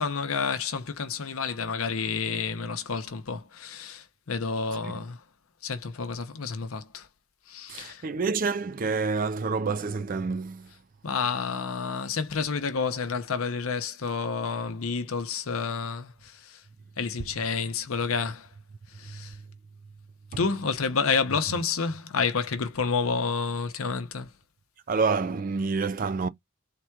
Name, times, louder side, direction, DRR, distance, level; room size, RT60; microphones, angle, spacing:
voice 1, 0.0-5.2 5.6-7.1 7.5-8.0 11.0-16.6 17.0-18.5 19.0-19.3 20.4-24.3, left 5 dB, 85° left, 0.7 m, -29 dB
voice 2, 7.7-10.7 19.0-19.6 20.3-20.4 21.5-21.6 24.9-26.3, right 4 dB, 40° right, 0.4 m, -28 dB
3.7 x 2.3 x 4.4 m
head